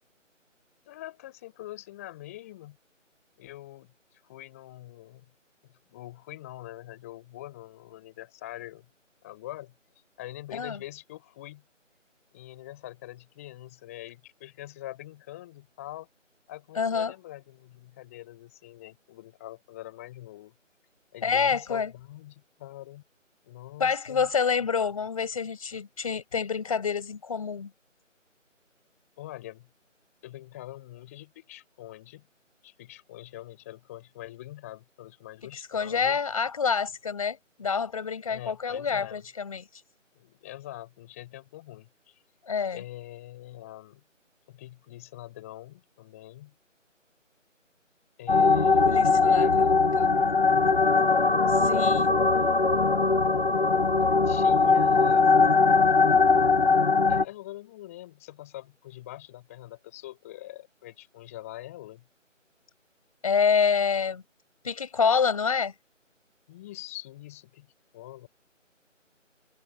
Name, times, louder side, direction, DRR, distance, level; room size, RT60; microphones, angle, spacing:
voice 1, 0.9-2.8 3.4-5.2 5.6-8.9 9.2-9.7 10.2-11.6 12.3-16.1 16.5-20.5 21.1-23.0 23.4-24.3 29.2-29.7 30.2-32.3 32.6-36.2 38.3-39.2 40.1-42.2 42.7-44.0 44.5-46.5 48.2-49.8 52.0-53.3 54.2-55.4 57.1-62.0 66.5-68.3, left 15 dB, 10° left, 4.9 m, -44 dB
voice 2, 16.8-17.1 21.2-21.9 23.8-27.7 35.7-39.7 42.5-42.8 48.8-50.1 51.5-52.1 63.2-64.2 64.6-65.7, left 6 dB, 25° left, 5.3 m, -27 dB
sound 1, 48.3-57.2, left 4 dB, 45° left, 1.1 m, -21 dB
figure-of-eight pair, 160°, 39 cm